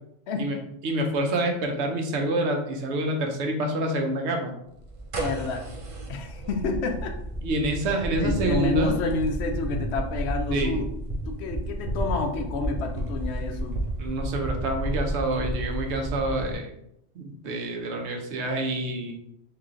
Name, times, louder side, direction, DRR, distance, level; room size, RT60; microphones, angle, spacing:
voice 1, 0.8-4.5 7.4-8.9 10.5-10.8 14.0-16.7 17.2-19.1, right 1 dB, 75° right, 2 dB, 1.0 m, -27 dB
sound 1, 4.8-16.5, right 1 dB, 40° right, 0.6 m, -32 dB
voice 2, 5.1-5.6 6.1-7.1 8.2-10.9 11.3-13.8, left 3 dB, 75° left, 4 dB, 0.8 m, -29 dB
3.2 x 2.8 x 3.7 m, 0.77 s
omnidirectional pair, 1.2 m